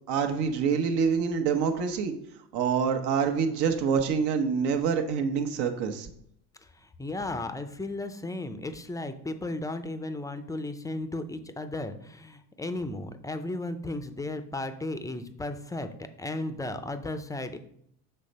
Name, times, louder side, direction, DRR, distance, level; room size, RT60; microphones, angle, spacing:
voice 1, 0.1-2.1 2.5-6.1, right 6 dB, 70° right, 5 dB, 1.1 m, -26 dB
voice 2, 6.6-15.9 16.2-17.6, left 2 dB, 10° left, 9 dB, 0.5 m, -35 dB
6.7 x 3.4 x 5.3 m, 0.72 s
supercardioid pair, 100°, 42 cm